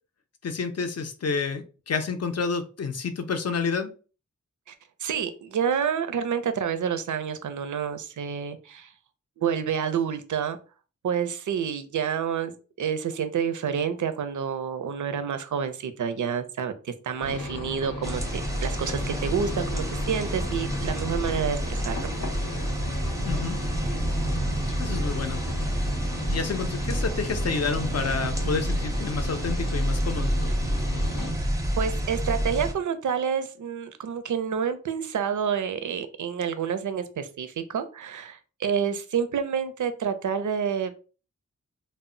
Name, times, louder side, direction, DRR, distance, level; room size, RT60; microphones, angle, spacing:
voice 1, 0.4-3.9 23.3-23.6 24.8-25.4 26.3-30.3, left 5 dB, 50° left, 8 dB, 0.5 m, -29 dB
voice 2, 5.0-8.9 9.4-10.6 11.0-22.1 31.4-31.5 31.8-40.9, right 7 dB, 70° right, 10 dB, 0.5 m, -28 dB
sound 1, 17.2-31.3, left 1 dB, 85° left, 0.8 m, -36 dB
sound 2, 18.0-32.7, right 1 dB, 10° right, 0.5 m, -29 dB
2.0 x 2.0 x 3.7 m, 0.36 s
wide cardioid pair, 65°, 32 cm